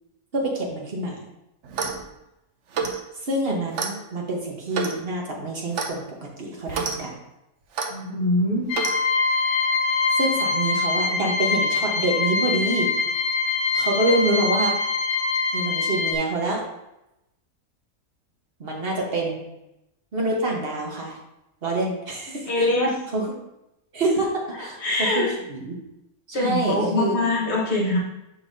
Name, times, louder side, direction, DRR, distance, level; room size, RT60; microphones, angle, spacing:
voice 1, 0.3-1.2 3.2-7.1 10.2-12.9 13.7-14.7 15.5-16.6 18.6-19.4 20.1-21.2 21.6-22.7 23.1-23.3 23.9-25.8 26.3-27.2, right 2 dB, 40° right, -1 dB, 1.4 m, -26 dB
Clock, 1.6-2.0 2.7-3.0 3.7-3.9 4.7-5.0 5.7-5.9 6.7-7.0 7.7-7.9 8.7-9.0, right 5 dB, 60° right, 1.0 m, -28 dB
voice 2, 7.9-8.7 22.4-23.0 24.8-25.3 26.3-28.0, left 2 dB, 50° left, -3 dB, 1.6 m, -23 dB
sound 1, 8.7-16.2, left 4 dB, 90° left, 1.1 m, -24 dB
6.4 x 5.5 x 2.7 m, 0.89 s
omnidirectional pair, 1.5 m